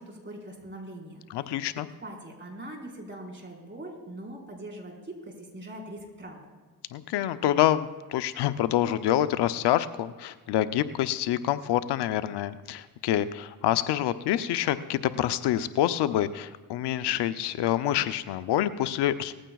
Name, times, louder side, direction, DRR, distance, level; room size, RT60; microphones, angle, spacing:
voice 1, 0.0-1.6 2.0-6.4, right 1 dB, 30° right, -1 dB, 4.5 m, -42 dB
voice 2, 1.3-1.9 6.9-19.3, left 12 dB, 80° left, 12 dB, 0.6 m, -27 dB
19.0 x 15.0 x 2.3 m, 1.4 s
supercardioid pair, 65°, 40 cm